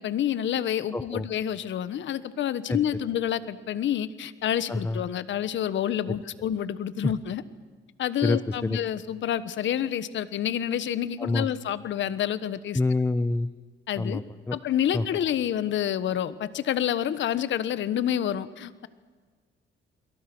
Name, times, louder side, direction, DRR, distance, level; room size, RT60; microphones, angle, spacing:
voice 1, 0.0-7.4 8.0-12.8 13.9-14.2 14.5-18.9, left 10 dB, 70° left, 15 dB, 1.3 m, -28 dB
voice 2, 0.9-1.3 2.7-2.8 4.7-5.0 8.2-8.8 11.2-11.5 12.7-13.5 14.0-14.6 14.9-15.0, left 2 dB, 10° left, 13 dB, 0.8 m, -27 dB
29.5 x 22.5 x 6.2 m, 1.5 s
cardioid pair, 90°, 20 cm